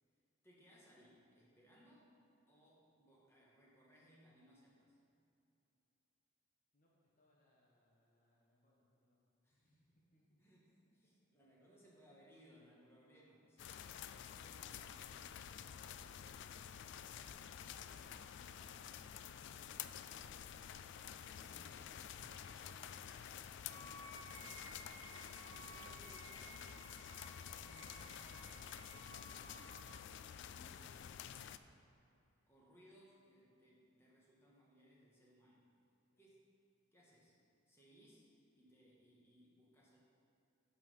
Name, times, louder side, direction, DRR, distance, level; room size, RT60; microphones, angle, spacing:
voice 1, 0.4-2.2 2.5-5.0 9.4-10.0 10.4-10.7 10.9-13.8 14.1-15.1 21.3-24.9 25.5-26.8 27.4-31.7 32.5-35.7 36.2-36.5 36.9-37.3 37.6-38.3 38.5-40.0, equal, 10° left, -5 dB, 1.6 m, -66 dB
voice 2, 6.7-10.2 16.6-20.4 36.1-36.2, equal, 40° left, -4 dB, 1.2 m, -74 dB
sound 1, 13.6-31.6, left 9 dB, 60° left, 0.3 m, -50 dB
sound 2, 22.1-24.4, right 1 dB, 60° right, 1.0 m, -67 dB
Wind instrument woodwind instrument, 23.7-30.0, right 2 dB, 85° right, 0.7 m, -57 dB
9.0 x 5.8 x 5.6 m, 2.7 s
head